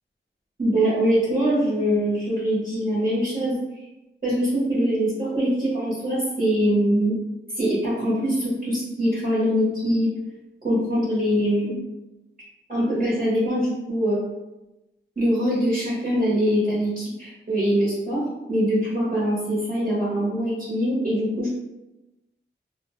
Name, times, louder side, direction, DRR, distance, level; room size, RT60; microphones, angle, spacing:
voice 1, 0.6-3.6 4.2-7.2 7.5-10.1 10.6-11.7 12.7-14.2 15.2-21.5, equal, 45° right, -8 dB, 1.0 m, -23 dB
2.7 x 2.1 x 2.9 m, 1.0 s
wide cardioid pair, 75°, 20 cm